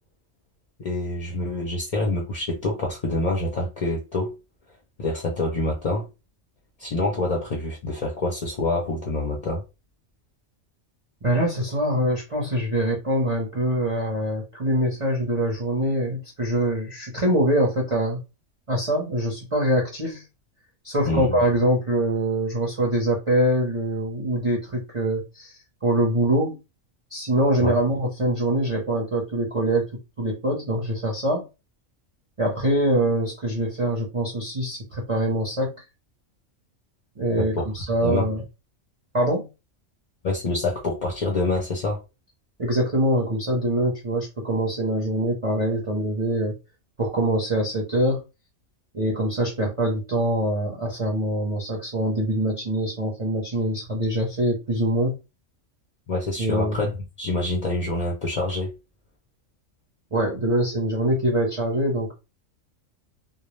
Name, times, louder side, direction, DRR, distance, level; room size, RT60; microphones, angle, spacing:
voice 1, 0.8-4.3 5.0-6.1 6.8-9.6 21.0-21.4 27.6-27.8 37.4-37.7 38.0-38.3 40.2-42.0 56.1-56.9 57.2-58.7, left 2 dB, 45° left, 0.5 m, -26 dB
voice 2, 11.2-18.2 18.7-20.2 20.8-25.5 25.8-26.6 27.1-29.9 30.2-31.4 32.4-35.7 37.2-38.4 39.1-39.5 42.6-46.5 47.0-48.2 48.9-55.1 56.4-56.8 60.1-62.1, right 1 dB, 35° right, 0.5 m, -24 dB
2.3 x 2.0 x 3.0 m
omnidirectional pair, 1.3 m